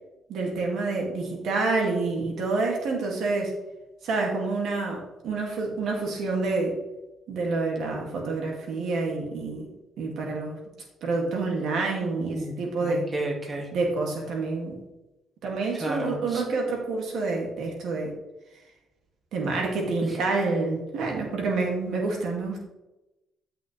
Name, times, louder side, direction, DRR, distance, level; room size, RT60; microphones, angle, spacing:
voice 1, 0.3-3.5 4.0-6.8 7.3-9.7 10.0-10.6 11.0-13.1 13.7-14.8 15.4-18.1 19.3-22.6, right 3 dB, 75° right, 0 dB, 2.5 m, -28 dB
voice 2, 12.0-13.7 15.7-16.4 20.0-20.2, right 1 dB, 30° right, 0 dB, 2.2 m, -33 dB
11.5 x 6.0 x 3.4 m, 0.97 s
cardioid pair, 90°, 0 cm